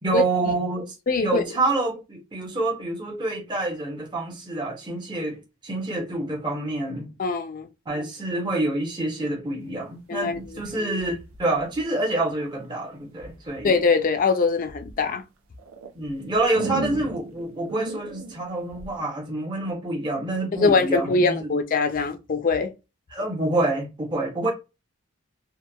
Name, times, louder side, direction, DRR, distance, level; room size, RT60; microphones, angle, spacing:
voice 1, 0.0-0.9 1.2-7.1 7.9-13.7 15.9-21.5 23.1-24.5, right 2 dB, 20° right, 0.6 m, -27 dB
voice 2, 1.1-1.4 7.2-7.7 10.1-10.4 13.6-15.2 20.6-22.7, left 4 dB, 40° left, 0.4 m, -22 dB
sound 1, 10.3-12.2 13.2-13.7 14.2-15.0 15.6-19.0, right 3 dB, 75° right, 0.4 m, -37 dB
2.7 x 2.2 x 2.2 m
head